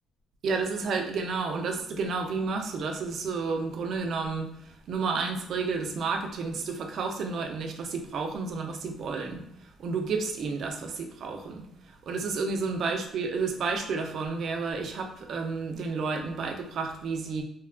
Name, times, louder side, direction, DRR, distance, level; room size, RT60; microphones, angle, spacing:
voice 1, 0.4-17.4, right 4 dB, 60° right, 3 dB, 0.4 m, -31 dB
2.8 x 2.3 x 2.3 m, 0.77 s
cardioid pair, 105°, 0 cm